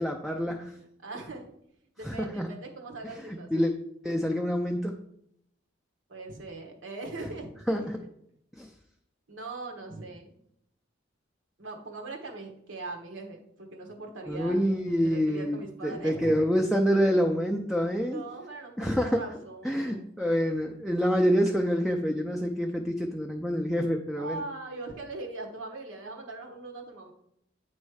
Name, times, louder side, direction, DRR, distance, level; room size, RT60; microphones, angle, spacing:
voice 1, 0.0-0.7 2.0-2.5 3.2-3.7 4.0-4.9 7.7-8.0 8.6-8.7 14.3-18.2 18.8-19.2 19.6-24.4, equal, ahead, 1 dB, 0.4 m, -27 dB
voice 2, 0.7-1.5 2.0-3.7 6.1-7.8 9.3-10.3 11.6-14.7 15.0-16.4 18.1-20.0 24.2-27.1, right 3 dB, 80° right, 1 dB, 1.3 m, -41 dB
8.7 x 3.1 x 4.8 m, 0.74 s
head